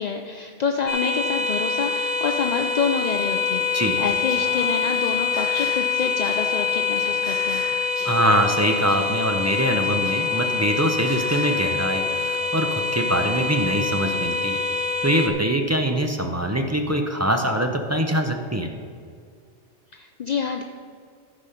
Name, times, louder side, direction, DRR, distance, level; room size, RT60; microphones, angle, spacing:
voice 1, 0.0-7.6 19.9-20.6, left 6 dB, 60° left, 5 dB, 0.4 m, -27 dB
sound 1, 0.9-15.3, left 4 dB, 35° left, 0.9 m, -25 dB
Singing, 4.1-11.6, equal, 5° left, 2.5 m, -41 dB
voice 2, 8.0-14.6 15.0-18.7, right 1 dB, 20° right, 4 dB, 0.5 m, -23 dB
14.0 x 5.1 x 5.6 m, 2.2 s
omnidirectional pair, 1.3 m